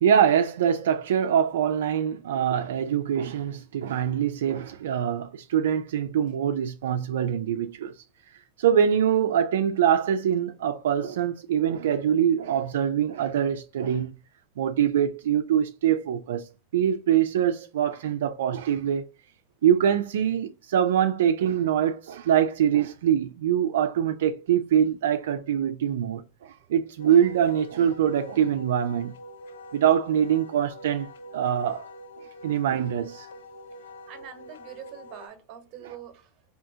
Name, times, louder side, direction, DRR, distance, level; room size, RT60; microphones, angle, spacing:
voice 1, 0.0-7.9 8.6-14.1 14.6-16.5 16.7-19.0 19.6-29.1 29.7-31.1 31.3-31.9 32.4-33.3, right 9 dB, 80° right, 0.3 m, -24 dB
Wind instrument woodwind instrument, 27.0-35.3, left 1 dB, 90° left, 0.5 m, -45 dB
voice 2, 33.7-36.3, right 9 dB, 45° right, 1.0 m, -44 dB
3.5 x 2.7 x 2.7 m
supercardioid pair, 120°, 0 cm